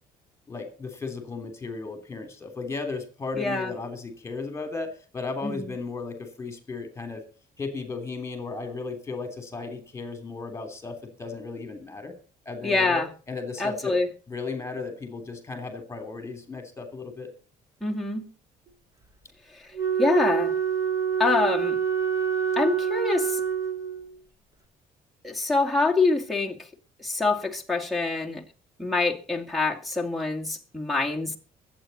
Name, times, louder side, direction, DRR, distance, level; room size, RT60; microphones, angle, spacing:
voice 1, 0.5-7.2 7.6-12.1 12.4-14.0 14.3-17.3, left 4 dB, 20° left, 6 dB, 3.2 m, -35 dB
voice 2, 3.4-3.7 5.4-5.7 12.6-13.1 13.6-14.1 17.8-18.3 20.0-20.5 21.2-21.8 22.6-23.4 25.2-26.6 27.0-28.4 28.8-31.4, left 3 dB, ahead, 6 dB, 2.4 m, -25 dB
Wind instrument woodwind instrument, 19.7-24.2, right 7 dB, 20° right, 2.8 m, -26 dB
23.0 x 8.7 x 4.2 m, 0.37 s
cardioid pair, 140°, 15 cm